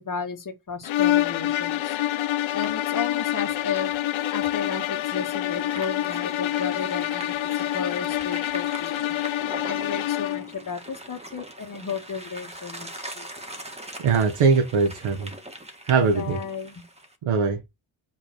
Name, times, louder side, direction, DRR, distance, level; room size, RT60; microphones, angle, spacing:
voice 1, 0.0-2.0 2.5-3.9 4.3-7.3 7.7-9.0 9.6-13.3 16.1-16.8, left 6 dB, 40° left, 2.1 m, -33 dB
sound 1, 0.8-10.5, left 13 dB, 70° left, 0.7 m, -26 dB
sound 2, 1.7-17.2, right 1 dB, 10° right, 1.7 m, -42 dB
voice 2, 14.0-15.3 15.9-16.4 17.2-17.6, right 5 dB, 85° right, 1.4 m, -21 dB
5.9 x 4.2 x 4.4 m
cardioid pair, 100°, 49 cm